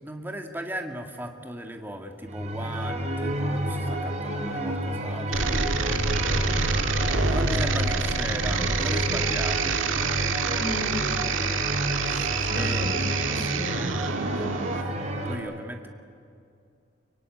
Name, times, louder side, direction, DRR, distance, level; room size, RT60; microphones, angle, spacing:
voice 1, 0.0-5.6 7.3-9.9 11.4-11.8 12.1-12.9 14.3-15.9, right 1 dB, 10° right, 4 dB, 1.8 m, -37 dB
sound 1, 2.2-15.4, equal, 35° right, 3.8 m, -30 dB
sound 2, 5.3-14.8, right 4 dB, 90° right, 1.8 m, -27 dB
voice 2, 6.4-6.9 7.2-7.3 8.3-9.2 10.6-11.1 12.5-14.0, equal, 70° left, 4 dB, 4.4 m, -36 dB
24.5 x 24.0 x 9.6 m, 2.3 s
head